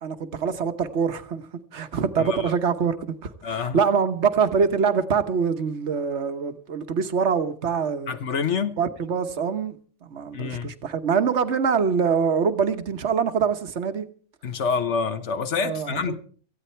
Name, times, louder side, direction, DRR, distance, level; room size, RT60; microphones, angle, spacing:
voice 1, 0.0-8.2 8.8-9.8 10.0-14.0 15.6-16.1, right 6 dB, 55° right, 1.4 m, -24 dB
voice 2, 2.2-2.5 3.4-3.8 8.1-8.8 10.3-10.7 14.4-16.1, left 5 dB, 60° left, 1.3 m, -27 dB
18.0 x 14.5 x 4.4 m
omnidirectional pair, 1.4 m